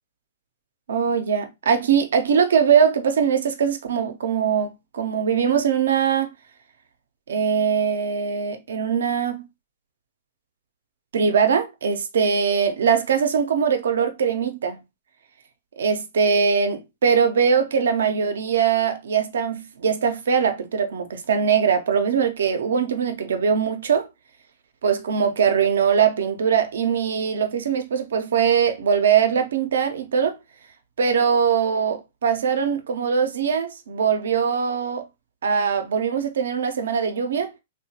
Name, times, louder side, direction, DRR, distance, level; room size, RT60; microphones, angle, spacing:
voice 1, 0.9-6.3 7.3-9.5 11.1-14.8 15.8-24.1 24.8-30.4 31.0-35.0 35.4-37.5, right 7 dB, 75° right, 0.6 m, -21 dB
2.8 x 2.2 x 2.8 m
hypercardioid pair, 125°, 0 cm